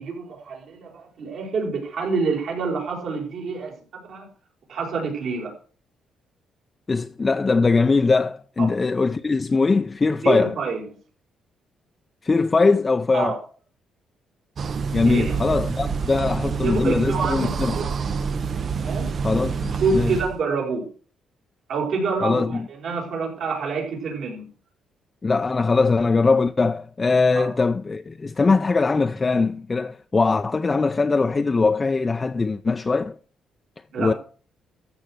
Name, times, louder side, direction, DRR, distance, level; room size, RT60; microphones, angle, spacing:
voice 1, 0.0-4.3 4.7-5.5 10.2-10.8 13.1-13.4 15.0-15.4 16.6-18.1 18.8-19.1 19.7-20.9 21.7-24.5 27.3-27.5 33.9-34.1, right 4 dB, 70° right, 4.8 m, -27 dB
voice 2, 6.9-10.5 12.2-13.4 14.9-17.8 19.2-20.2 22.2-22.7 25.2-33.2 34.0-34.1, left 4 dB, 30° left, 0.5 m, -21 dB
sound 1, 14.6-20.4, right 5 dB, 50° right, 0.7 m, -27 dB
14.0 x 6.5 x 6.0 m
cardioid pair, 90°, 0 cm